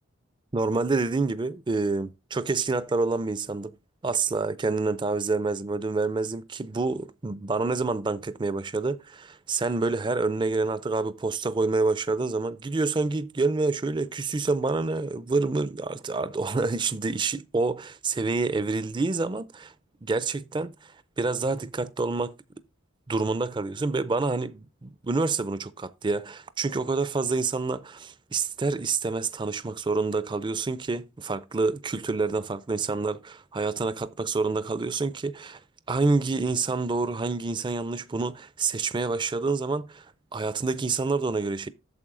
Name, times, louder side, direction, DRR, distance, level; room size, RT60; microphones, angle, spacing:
voice 1, 0.5-3.7 4.0-19.7 20.0-22.3 23.1-35.6 35.9-40.1 40.3-41.7, right 3 dB, 20° right, 0.4 m, -27 dB
8.7 x 7.0 x 3.7 m
head